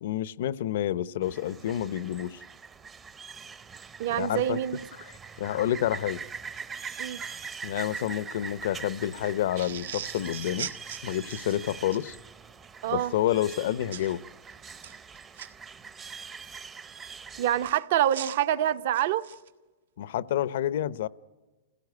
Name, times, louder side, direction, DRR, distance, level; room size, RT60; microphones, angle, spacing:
voice 1, 0.0-2.4 4.1-4.6 5.4-6.2 7.6-10.7 11.0-12.2 12.9-14.2 20.0-21.1, left 12 dB, 65° left, 0.7 m, -29 dB
sound 1, 1.2-17.7, right 5 dB, 15° right, 0.7 m, -43 dB
voice 2, 4.0-4.8 7.0-7.2 12.8-13.1 17.4-19.3, right 11 dB, 55° right, 0.8 m, -26 dB
sound 2, 9.5-12.0 13.9-14.1 14.7-15.5 17.6-19.5, right 9 dB, 85° right, 1.6 m, -40 dB
29.0 x 17.0 x 9.5 m
supercardioid pair, 160°, 0 cm